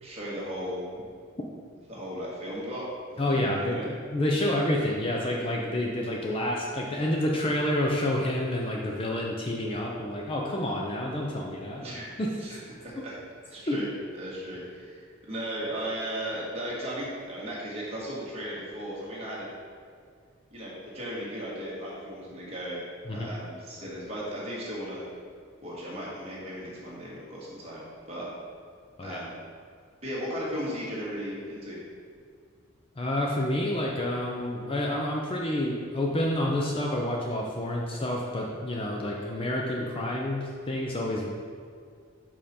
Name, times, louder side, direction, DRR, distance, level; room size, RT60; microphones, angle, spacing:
voice 1, 0.0-0.8 1.9-2.8 3.2-3.9 11.8-13.1 13.4-13.9 14.1-19.5 20.5-22.8 23.1-25.0 25.6-28.3 29.0-29.3 30.0-31.8, equal, 30° right, -6 dB, 1.6 m, -36 dB
voice 2, 3.2-11.9 12.2-12.4 13.7-13.9 23.1-23.3 29.0-29.2 33.0-41.3, left 1 dB, 25° left, -1 dB, 0.5 m, -29 dB
5.3 x 5.3 x 4.3 m, 2.1 s
head